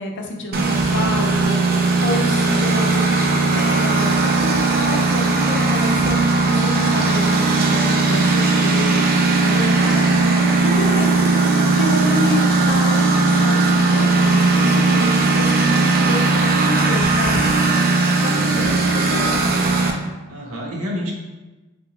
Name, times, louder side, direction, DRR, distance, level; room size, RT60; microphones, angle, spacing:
voice 1, 0.0-11.3 11.6-17.5 18.2-19.5, left 2 dB, 55° left, 1 dB, 0.5 m, -29 dB
Engine, 0.5-19.9, right 3 dB, 45° right, 0.3 m, -17 dB
voice 2, 17.3-18.0 18.3-19.1 20.3-21.1, equal, 75° right, -1 dB, 0.7 m, -31 dB
3.7 x 2.2 x 2.9 m, 1.1 s
head